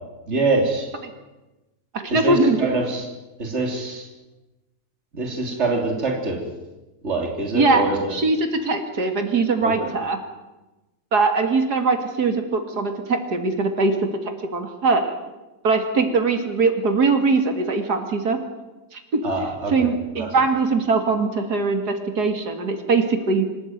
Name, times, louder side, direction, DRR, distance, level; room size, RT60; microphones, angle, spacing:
voice 1, 0.3-0.9 2.1-3.1 3.4-4.1 5.1-6.4 7.0-8.2 9.6-9.9 19.2-19.9 20.2-20.3, right 2 dB, 45° right, 1 dB, 3.6 m, -24 dB
voice 2, 1.9-2.6 7.5-7.8 8.1-10.2 11.1-13.9 14.5-15.2 15.6-18.4 18.9-19.2 19.7-23.5, right 3 dB, 90° right, 6 dB, 3.0 m, -21 dB
26.0 x 14.0 x 9.4 m, 1.1 s
omnidirectional pair, 1.7 m